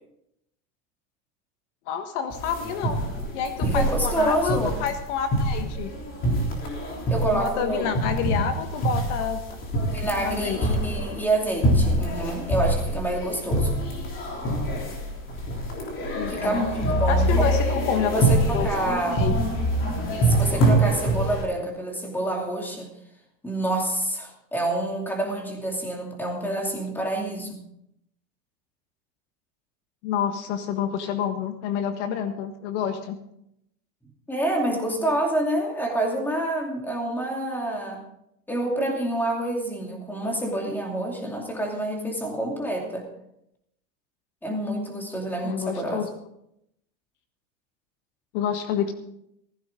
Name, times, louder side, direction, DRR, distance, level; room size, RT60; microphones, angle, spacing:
voice 1, 1.9-3.0 3.3-5.9 7.3-9.4 10.2-10.6 16.2-16.7 17.1-18.7 19.1-19.4 30.0-33.2 45.4-46.1 48.3-48.9, left 8 dB, 60° left, 7 dB, 1.6 m, -28 dB
sound 1, 2.3-21.4, right 1 dB, 30° left, 3.5 m, -25 dB
voice 2, 3.6-4.8 7.1-7.9 9.9-13.7 16.3-17.5 18.1-19.3 20.2-22.9 23.4-27.6 34.3-38.0 38.5-43.1 44.4-46.0, right 1 dB, 5° left, 1 dB, 2.6 m, -27 dB
16.0 x 15.0 x 3.8 m, 0.77 s
supercardioid pair, 160°, 41 cm